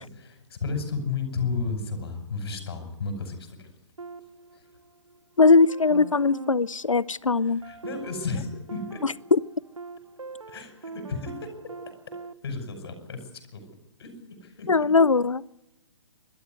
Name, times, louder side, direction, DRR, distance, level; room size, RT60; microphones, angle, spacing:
voice 1, 0.0-3.7 4.5-4.6 7.4-9.0 10.5-11.5 12.4-13.6 14.0-14.9, left 4 dB, 50° left, 7 dB, 5.8 m, -33 dB
sound 1, 4.0-5.2 5.7-12.3, right 4 dB, 80° right, 1.0 m, -43 dB
voice 2, 5.4-7.6 9.3-9.4 14.7-15.6, left 4 dB, 85° left, 22 dB, 0.7 m, -20 dB
21.0 x 13.0 x 9.7 m, 0.97 s
figure-of-eight pair, 135°, 16 cm